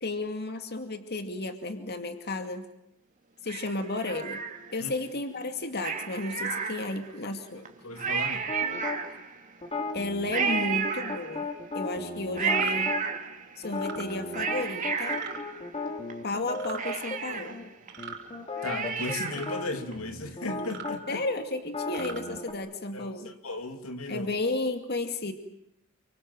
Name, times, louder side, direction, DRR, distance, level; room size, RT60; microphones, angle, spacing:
voice 1, 0.0-2.7 3.4-4.4 4.7-7.7 9.9-11.5 11.7-13.0 13.6-15.2 16.2-17.7 21.1-23.4 24.1-25.3, left 2 dB, 50° left, 7 dB, 2.3 m, -33 dB
Cat, 3.5-4.9 5.8-7.2 7.6-7.7 8.0-9.5 10.3-11.7 12.4-13.6 14.1-16.1 16.4-16.5 16.8-19.6 19.9-20.0, right 6 dB, 40° right, 2.6 m, -32 dB
voice 2, 7.8-8.5 18.6-21.2 22.9-24.3, left 2 dB, 90° left, 6 dB, 2.8 m, -36 dB
sound 1, 8.5-9.0 9.6-13.0 13.6-17.2 17.5-17.6 18.0-22.5, left 2 dB, 30° left, 3.2 m, -36 dB
sound 2, 12.4-12.7 13.7-14.1 15.1-15.4 16.5-16.8 17.9-18.2 19.3-19.5 20.6-20.9 21.8-22.2, right 6 dB, 55° right, 5.7 m, -41 dB
30.0 x 24.5 x 7.8 m, 0.76 s
head